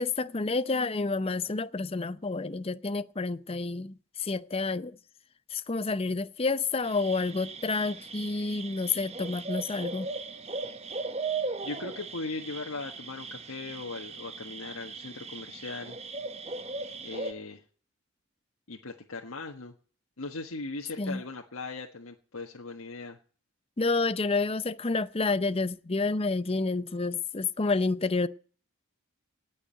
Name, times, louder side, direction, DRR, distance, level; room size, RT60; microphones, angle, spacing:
voice 1, 0.0-5.0 5.5-10.1 21.0-21.2 23.8-28.3, left 3 dB, 30° left, 0.6 m, -29 dB
sound 1, 6.8-17.3, right 4 dB, 30° right, 1.2 m, -38 dB
voice 2, 11.6-16.0 17.0-17.6 18.7-19.7 20.2-23.2, left 3 dB, 90° left, 1.6 m, -39 dB
18.5 x 6.5 x 8.7 m
head